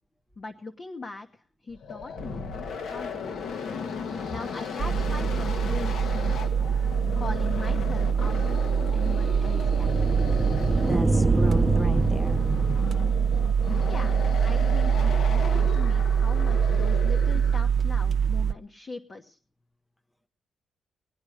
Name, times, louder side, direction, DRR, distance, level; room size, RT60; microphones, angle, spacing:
voice 1, 0.4-2.5 2.9-3.6 4.3-6.6 7.2-9.9 13.9-19.4, left 3 dB, 45° left, 4 dB, 1.1 m, -40 dB
sound 1, 1.7-17.8, left 5 dB, 75° left, 1.4 m, -35 dB
sound 2, 4.8-18.5, right 7 dB, 60° right, 0.6 m, -24 dB
sound 3, 8.0-13.6, right 2 dB, 20° right, 0.8 m, -27 dB
voice 2, 10.9-12.5, equal, 15° left, 9 dB, 1.1 m, -35 dB
20.0 x 9.7 x 4.9 m, 0.44 s
cardioid pair, 85°, 0 cm